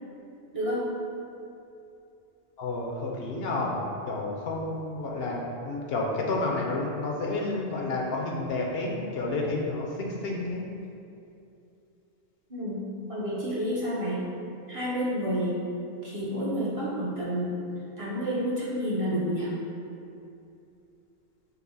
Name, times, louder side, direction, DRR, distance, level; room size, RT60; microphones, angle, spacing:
voice 1, 0.5-0.9 12.5-12.8 13.1-14.2 14.7-15.6 16.0-17.5 18.0-19.5, equal, 35° right, -8 dB, 0.7 m, -29 dB
voice 2, 2.6-10.6, left 2 dB, 70° left, -1 dB, 0.7 m, -30 dB
5.4 x 2.0 x 3.9 m, 2.6 s
omnidirectional pair, 1.1 m